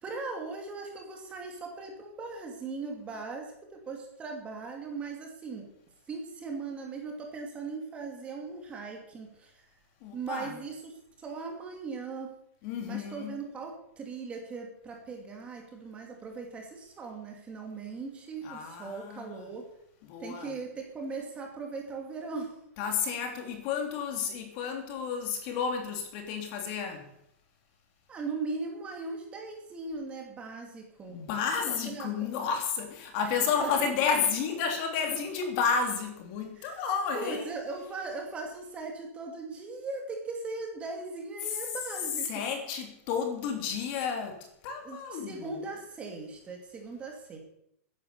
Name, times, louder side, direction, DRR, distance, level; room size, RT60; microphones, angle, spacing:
voice 1, 0.0-5.6 6.1-9.6 10.1-10.9 11.2-12.3 12.8-19.6 20.2-22.5 28.1-31.2 31.7-32.3 33.6-33.7 36.6-36.8 37.1-42.3 44.8-47.4, right 4 dB, 15° right, 2.7 m, -39 dB
voice 2, 10.0-10.6 12.6-13.4 18.4-19.5 20.0-20.5 22.8-27.1 31.1-37.5 42.2-45.7, left 6 dB, 35° left, 3.0 m, -31 dB
14.5 x 10.5 x 6.9 m
supercardioid pair, 165°, 8 cm